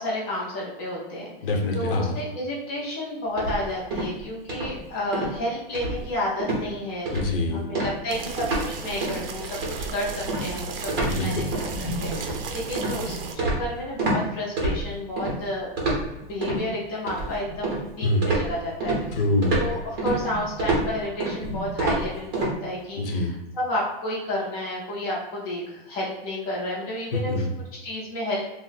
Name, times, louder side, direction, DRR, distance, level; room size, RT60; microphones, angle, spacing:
voice 1, 0.0-1.3 1.7-7.1 7.5-9.5 9.9-11.7 12.0-15.9 16.3-19.0 19.6-27.5 27.8-28.5, left 1 dB, 15° left, -6 dB, 0.5 m, -31 dB
voice 2, 1.4-2.2 7.1-7.7 11.0-11.5 18.0-18.3 19.1-19.6 23.0-23.3 27.1-27.5, left 2 dB, 70° left, 3 dB, 0.8 m, -25 dB
sound 1, 3.4-4.2 4.5-4.8 5.1-5.4 5.7-6.1 6.4-6.7 7.1-7.4 7.7-8.7 9.0-9.2 9.6-14.2 14.6-15.3 15.8-16.6 17.1-17.9 18.2-22.5, right 2 dB, 25° right, 0.7 m, -28 dB
sound 2, 8.1-13.4, right 4 dB, 70° right, 0.6 m, -35 dB
3.0 x 2.0 x 3.9 m, 1.0 s
supercardioid pair, 175°, 29 cm